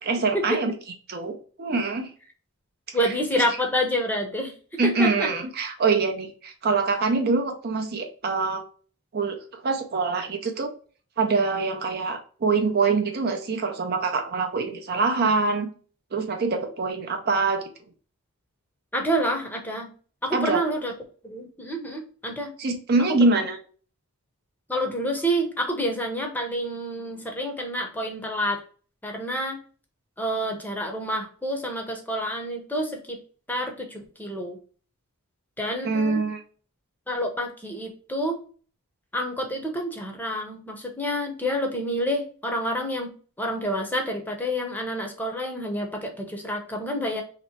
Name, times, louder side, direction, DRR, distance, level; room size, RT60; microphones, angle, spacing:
voice 1, 0.0-0.7 1.1-2.1 3.0-3.4 4.8-8.6 9.1-10.7 11.2-15.7 16.1-17.6 20.3-20.6 22.6-23.6 35.8-36.4, right 4 dB, 45° right, 5 dB, 0.5 m, -24 dB
voice 2, 2.9-4.5 4.8-5.3 18.9-19.9 20.2-20.9 21.2-22.5 23.3-23.4 24.7-28.6 29.0-29.6 30.2-33.2 33.5-34.6 35.6-36.2 37.1-38.4 39.1-43.1 43.4-47.2, equal, 10° left, 2 dB, 0.7 m, -28 dB
3.1 x 2.9 x 4.3 m, 0.41 s
head